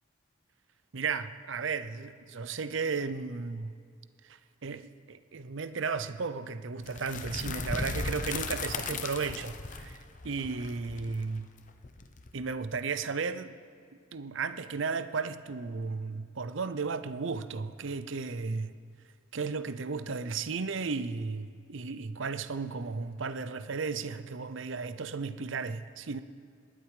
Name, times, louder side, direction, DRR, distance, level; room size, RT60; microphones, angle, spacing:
voice 1, 0.9-3.8 4.3-11.5 12.3-13.5 14.1-18.8 19.3-26.2, right 4 dB, 65° right, 0.6 m, -34 dB
sound 1, 6.8-12.7, left 4 dB, 40° left, 0.8 m, -37 dB
19.5 x 11.5 x 4.9 m
head